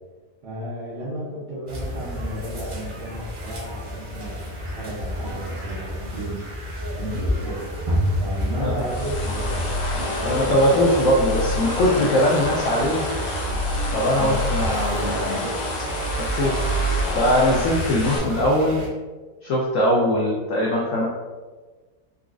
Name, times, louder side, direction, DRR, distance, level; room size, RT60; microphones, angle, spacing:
voice 1, 0.4-4.4 4.7-6.5 6.9-7.6 8.2-9.7 10.0-11.0 14.1-14.4 18.1-18.2 20.1-20.3, right 1 dB, 90° right, -11 dB, 1.5 m, -33 dB
sound 1, 1.7-18.9, equal, 45° right, 0.7 m, -31 dB
sound 2, 8.8-18.2, left 1 dB, 85° left, 1.3 m, -27 dB
voice 2, 10.2-13.1 13.9-15.5 16.2-16.6 17.1-18.8 19.4-21.1, left 1 dB, 70° left, -3 dB, 0.8 m, -21 dB
4.0 x 2.4 x 2.4 m, 1.3 s
omnidirectional pair, 1.8 m